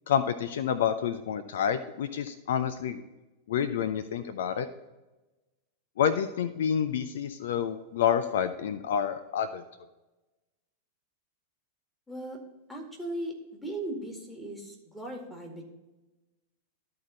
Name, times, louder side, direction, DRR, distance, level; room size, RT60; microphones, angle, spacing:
voice 1, 0.1-3.0 3.5-4.7 6.0-9.6, left 8 dB, 60° left, 11 dB, 0.4 m, -28 dB
voice 2, 12.1-12.4 12.7-15.6, right 1 dB, ahead, -1 dB, 2.0 m, -38 dB
13.0 x 4.4 x 4.1 m, 1.1 s
figure-of-eight pair, 90°, 0 cm